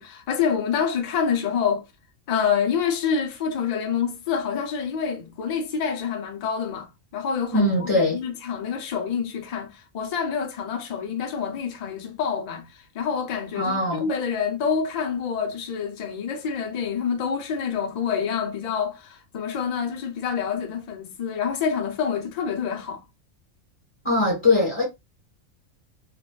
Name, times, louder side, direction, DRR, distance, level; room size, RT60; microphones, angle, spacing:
voice 1, 0.0-1.9 2.3-23.0, left 6 dB, 80° left, 0.3 m, -27 dB
voice 2, 7.5-8.2 13.5-14.1 24.0-24.8, left 2 dB, 25° left, 1.3 m, -21 dB
2.5 x 2.2 x 2.3 m
omnidirectional pair, 1.4 m